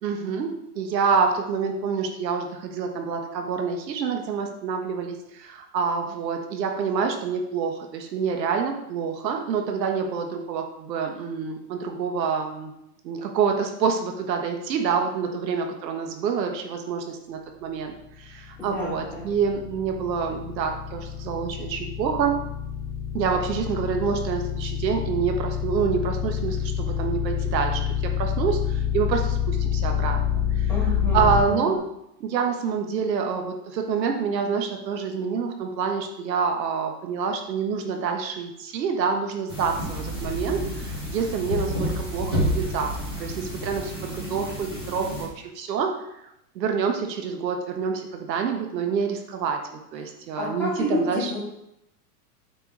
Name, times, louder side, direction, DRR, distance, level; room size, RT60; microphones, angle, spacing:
voice 1, 0.0-12.7 13.0-22.4 23.1-30.2 30.5-30.7 31.1-31.8 32.2-46.0 46.5-51.3, right 6 dB, 85° right, 4 dB, 1.4 m, -27 dB
sound 1, 18.1-31.4, left 8 dB, 50° left, 2.5 m, -27 dB
voice 2, 18.6-19.2 30.7-31.7 50.4-51.5, left 2 dB, 5° left, -11 dB, 3.1 m, -30 dB
sound 2, 39.5-45.3, equal, 20° right, 0.3 m, -30 dB
8.3 x 4.6 x 4.7 m, 0.83 s
supercardioid pair, 165°, 49 cm